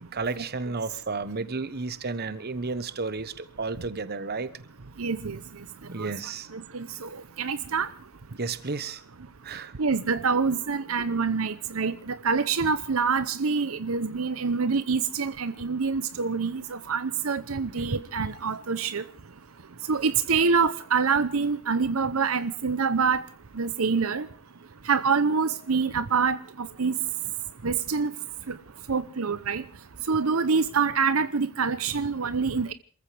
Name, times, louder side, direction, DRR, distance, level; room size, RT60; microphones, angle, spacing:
voice 1, 0.1-4.5 5.9-6.5 8.4-9.0 9.4-9.7, right 4 dB, 50° right, 1.2 m, -32 dB
voice 2, 5.0-5.4 6.0-6.1 6.5-7.1 7.4-7.9 9.8-19.0 19.9-23.2 23.6-24.3 24.9-26.9 27.6-28.1 28.5-28.6 28.9-29.6 30.1-32.7, right 5 dB, 80° right, 0.8 m, -26 dB
27.5 x 14.5 x 3.4 m
head